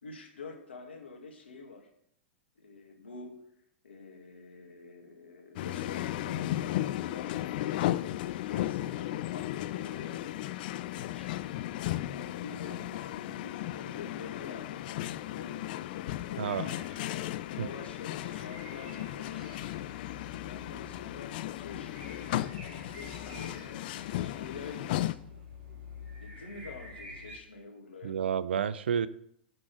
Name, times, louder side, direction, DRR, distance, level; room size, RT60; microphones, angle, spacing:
voice 1, 0.0-1.9 2.6-3.3 3.8-7.8 8.5-11.3 12.1-15.6 15.9-16.8 17.5-19.6 20.4-23.8 24.3-25.3 26.2-28.2, left 4 dB, 85° left, 2 dB, 2.0 m, -47 dB
sound 1, 5.6-25.2, left 14 dB, 55° left, 0.4 m, -35 dB
sound 2, 16.4-27.4, left 2 dB, 50° right, 3.7 m, -49 dB
voice 2, 28.0-29.1, right 8 dB, 75° right, 17 dB, 0.5 m, -30 dB
7.7 x 5.6 x 6.1 m, 0.70 s
hypercardioid pair, 105°, 6 cm